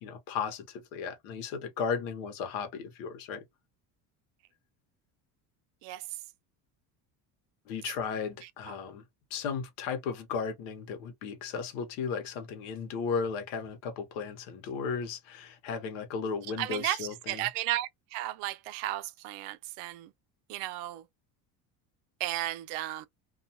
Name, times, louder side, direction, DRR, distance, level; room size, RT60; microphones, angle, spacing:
voice 1, 0.0-3.4 7.7-9.0 9.3-17.5, left 6 dB, 80° left, 1.0 m, -35 dB
voice 2, 16.6-20.1 20.5-21.0 22.2-23.1, right 15 dB, 85° right, 0.5 m, -34 dB
2.4 x 2.3 x 2.7 m
cardioid pair, 140°, 42 cm